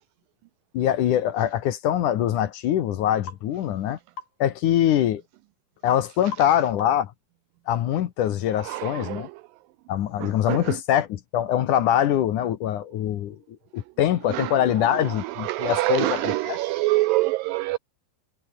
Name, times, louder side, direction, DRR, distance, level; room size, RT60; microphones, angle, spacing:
voice 1, 0.7-4.0 4.4-5.2 5.8-7.1 7.7-9.3 9.9-13.4 13.7-16.6, left 11 dB, 65° left, 2.4 m, -23 dB
sound 1, 3.3-3.5 4.2-4.4 6.3-6.5 6.8-7.1, left 5 dB, 80° left, 7.2 m, -39 dB
voice 2, 8.6-9.4 10.2-10.8 14.3-17.8, right 20 dB, 85° right, 2.0 m, -26 dB
omnidirectional pair, 4.4 m